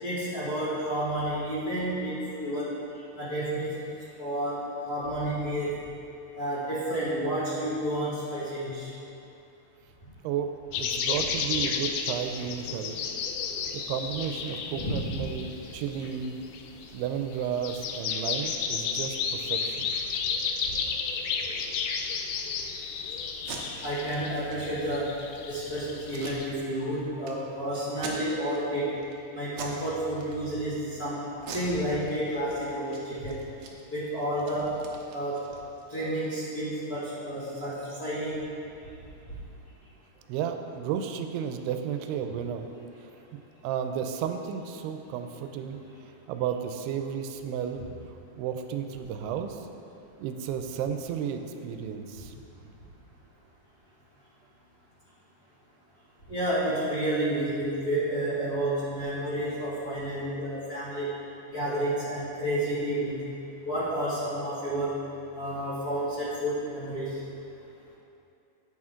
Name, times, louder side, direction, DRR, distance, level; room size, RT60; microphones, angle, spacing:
voice 1, 0.0-2.7 3.1-3.9 4.2-5.8 6.3-8.9 11.1-11.2 14.8-15.2 23.8-25.2 25.5-28.9 29.3-31.2 31.5-33.4 33.9-34.7 35.1-35.4 35.9-38.4 56.3-61.1 61.5-63.3 63.6-65.0 65.3-67.2, right 1 dB, 45° left, -11 dB, 1.2 m, -30 dB
voice 2, 10.2-13.0 13.9-16.4 16.9-19.9 40.3-42.7 43.6-45.8 46.3-47.9 48.3-49.7 50.2-52.3, right 8 dB, 90° right, 6 dB, 2.6 m, -33 dB
sound 1, 10.7-26.5, left 6 dB, 80° left, 2.3 m, -33 dB
Packing tape duct tape, 23.3-23.6 24.0-24.2 24.5-24.6 25.0-25.4 26.1-26.9 27.2-27.3 27.9-28.6 29.0-29.2 29.5-29.8 30.1-30.8 31.4-32.5 32.8-33.0 33.3-35.9, right 5 dB, 70° right, 1.8 m, -42 dB
10.5 x 8.7 x 3.7 m, 2.7 s
omnidirectional pair, 4.6 m